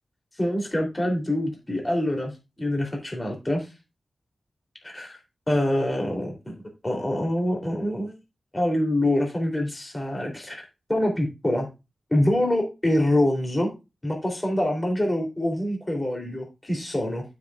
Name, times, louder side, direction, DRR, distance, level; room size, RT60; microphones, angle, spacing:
voice 1, 0.4-2.3 2.6-3.7 4.8-5.2 5.5-8.2 8.5-10.6 10.9-11.7 12.1-13.7 14.0-17.2, left 1 dB, 20° left, 1 dB, 3.3 m, -25 dB
12.0 x 6.8 x 2.5 m, 0.26 s
wide cardioid pair, 155°, 0 cm